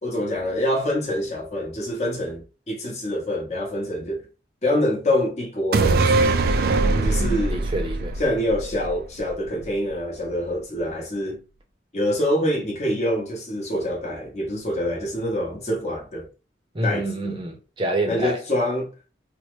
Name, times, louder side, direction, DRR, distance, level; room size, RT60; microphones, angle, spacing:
voice 1, 0.0-4.3 4.6-6.3 7.0-7.7 8.2-11.4 11.9-16.3 16.8-17.4 18.1-18.9, left 1 dB, 40° left, 1.0 m, -26 dB
sound 1, 5.7-9.3 9.6-9.7, right 3 dB, 55° right, 0.3 m, -21 dB
voice 2, 6.8-8.2 16.7-18.4, right 1 dB, 25° right, 0.6 m, -27 dB
3.1 x 2.1 x 3.1 m
head